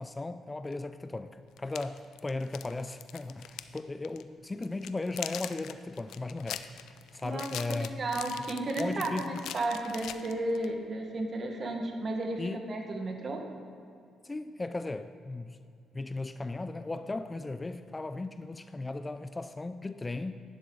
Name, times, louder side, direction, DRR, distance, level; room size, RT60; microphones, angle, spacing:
voice 1, 0.0-6.7 7.1-8.0 8.8-9.4 12.4-12.6 14.2-15.6 15.9-20.4, left 2 dB, 20° left, 11 dB, 0.4 m, -36 dB
sound 1, 0.7-0.8 1.6-3.8 4.0-4.2 4.6-10.7, left 11 dB, 85° left, 0.4 m, -42 dB
voice 2, 7.2-13.4, right 2 dB, 45° right, 3 dB, 1.5 m, -33 dB
11.0 x 10.5 x 3.9 m, 2.4 s
cardioid pair, 90°, 0 cm